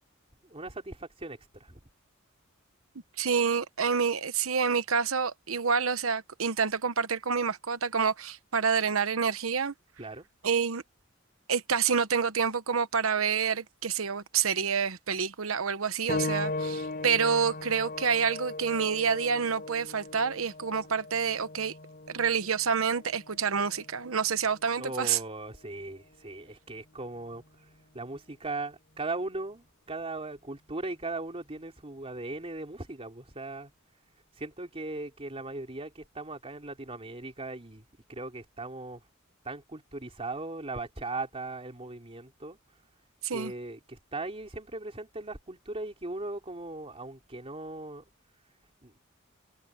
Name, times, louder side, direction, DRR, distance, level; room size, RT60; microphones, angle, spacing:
voice 1, 0.4-1.8 10.0-10.3 24.8-27.4 27.9-33.7 34.4-37.8 38.1-39.0 39.4-42.6 43.3-48.0 48.8-49.0, right 2 dB, 30° right, 3.2 m, -38 dB
voice 2, 3.2-9.7 10.4-10.8 11.5-21.7 22.1-25.2 43.2-43.5, right 6 dB, 80° right, 1.1 m, -28 dB
sound 1, 16.1-26.3 27.3-27.4 28.1-28.2, left 2 dB, 45° left, 6.9 m, -38 dB
head